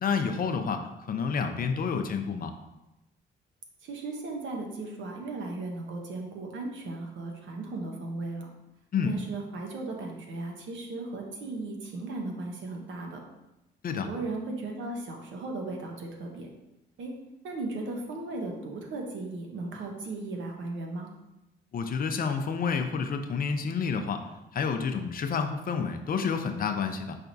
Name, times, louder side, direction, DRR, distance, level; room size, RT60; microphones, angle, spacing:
voice 1, 0.0-2.5 8.9-9.2 13.8-14.1 21.7-24.2 24.5-27.2, left 5 dB, 45° left, 7 dB, 0.5 m, -29 dB
voice 2, 3.8-8.5 9.0-13.2 13.9-16.5 17.0-17.1 17.4-21.1, right 2 dB, 70° right, 1 dB, 0.9 m, -36 dB
5.7 x 3.4 x 2.6 m, 0.94 s
cardioid pair, 90°, 20 cm